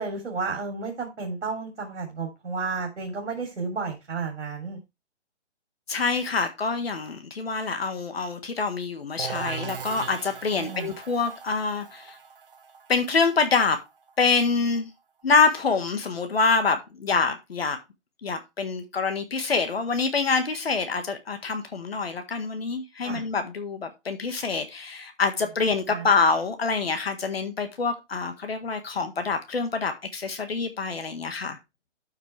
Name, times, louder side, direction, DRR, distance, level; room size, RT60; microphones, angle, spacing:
voice 1, 0.0-4.8 10.5-10.9 23.0-23.2 25.9-26.1, right 4 dB, 70° right, 3.3 m, -32 dB
voice 2, 5.9-12.1 12.9-13.8 14.2-14.9 15.2-17.8 18.2-31.6, left 4 dB, 55° left, 1.7 m, -26 dB
sound 1, 9.2-14.8, right 5 dB, 50° right, 1.2 m, -39 dB
12.5 x 5.8 x 3.4 m
hypercardioid pair, 170°, 36 cm